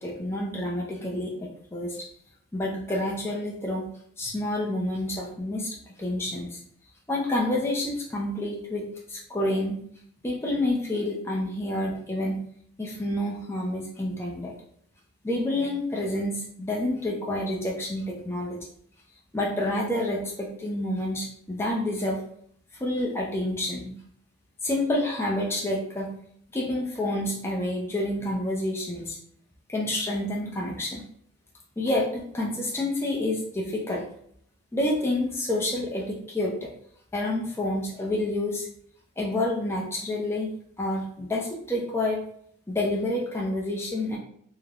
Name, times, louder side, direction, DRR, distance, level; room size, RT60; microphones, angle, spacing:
voice 1, 0.0-2.0 2.5-3.9 4.2-6.6 7.1-9.8 10.2-12.4 12.8-14.5 15.2-18.6 19.3-22.2 22.8-23.9 24.6-26.1 26.5-29.2 29.7-31.0 31.8-34.0 34.7-36.7 37.1-38.7 39.2-40.5 40.8-42.2 42.7-44.2, left 1 dB, 10° left, -3 dB, 0.4 m, -28 dB
3.2 x 2.0 x 2.3 m, 0.64 s
head